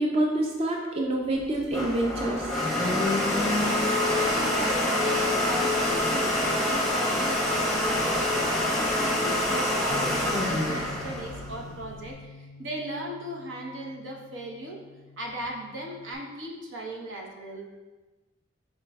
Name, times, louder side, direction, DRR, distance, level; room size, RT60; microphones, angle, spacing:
voice 1, 0.0-2.5, right 1 dB, 30° right, 0 dB, 0.4 m, -27 dB
Domestic sounds home sounds, 1.4-12.1, left 1 dB, ahead, 0.8 m, -26 dB
voice 2, 3.3-14.8 15.2-17.7, right 1 dB, 80° right, -1 dB, 0.8 m, -38 dB
Bass guitar, 9.9-16.2, left 3 dB, 65° left, 0.4 m, -46 dB
5.0 x 4.5 x 2.3 m, 1.2 s
head